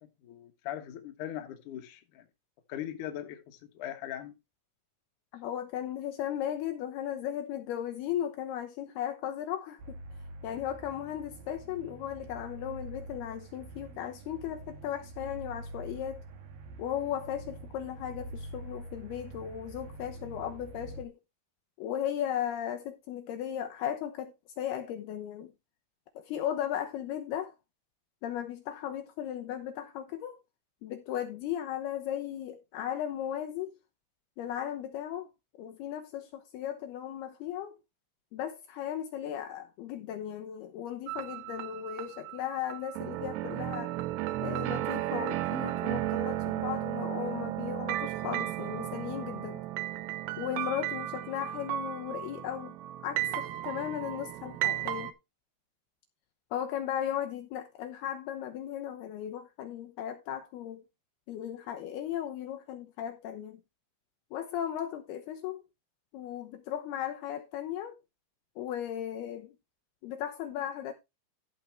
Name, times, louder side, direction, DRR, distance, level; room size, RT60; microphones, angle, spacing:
voice 1, 0.0-2.3 2.7-4.4, left 11 dB, 70° left, 1.9 m, -40 dB
voice 2, 5.3-10.0 10.4-16.2 16.8-21.2 21.8-25.5 26.2-27.5 28.2-30.4 30.8-33.7 34.4-35.3 35.6-37.8 38.3-43.9 44.4-49.6 50.4-52.8 53.0-55.1 56.5-60.8 61.3-63.6 64.3-65.6 66.1-68.0 68.6-69.6 70.0-70.9, left 10 dB, 90° left, 2.2 m, -36 dB
sound 1, 9.8-21.1, right 2 dB, 60° right, 2.7 m, -45 dB
sound 2, 41.1-55.1, right 14 dB, 80° right, 2.5 m, -34 dB
14.5 x 5.1 x 4.5 m
omnidirectional pair, 5.9 m